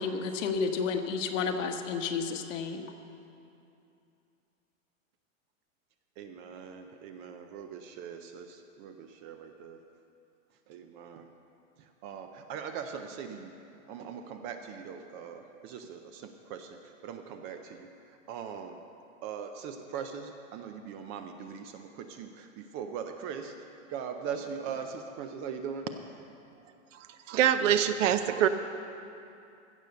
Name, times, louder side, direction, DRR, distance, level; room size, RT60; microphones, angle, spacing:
voice 1, 0.0-2.9, left 5 dB, 65° left, 5 dB, 1.3 m, -31 dB
voice 2, 6.2-9.8 10.7-11.3 12.0-13.5 13.9-16.8 17.0-17.9 18.3-18.8 19.2-23.5 23.9-25.9, right 7 dB, 25° right, 6 dB, 0.4 m, -40 dB
voice 3, 27.3-28.5, right 10 dB, 65° right, 10 dB, 0.9 m, -24 dB
15.5 x 6.7 x 6.8 m, 2.7 s
hypercardioid pair, 140°, 41 cm